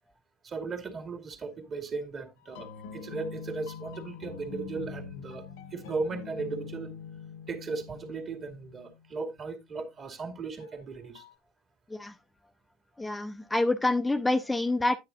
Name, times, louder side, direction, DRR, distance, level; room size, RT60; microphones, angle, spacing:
voice 1, 0.4-5.4 5.7-6.9 7.5-11.2, right 4 dB, 40° right, 2.3 m, -37 dB
sound 1, 2.4-9.1 10.6-11.3, left 7 dB, 85° left, 1.3 m, -44 dB
voice 2, 13.0-15.0, left 2 dB, 10° left, 0.6 m, -27 dB
9.7 x 9.3 x 2.5 m
supercardioid pair, 95°, 0 cm